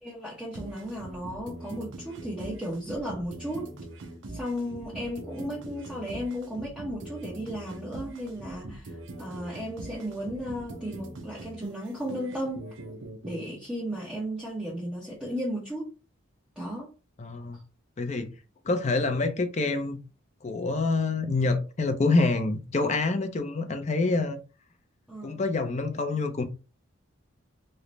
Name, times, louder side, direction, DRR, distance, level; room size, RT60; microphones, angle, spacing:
voice 1, 0.0-3.8 4.3-12.6 13.2-15.9 16.6-16.9 17.5-17.6 25.1-25.4, equal, 5° right, 0.7 m, -35 dB
sound 1, 0.5-13.5, right 2 dB, 65° right, 0.6 m, -42 dB
voice 2, 17.2-17.6 18.0-18.3 18.6-20.0 20.4-24.4 25.2-26.4, left 3 dB, 35° left, 0.5 m, -26 dB
3.2 x 2.1 x 3.8 m
head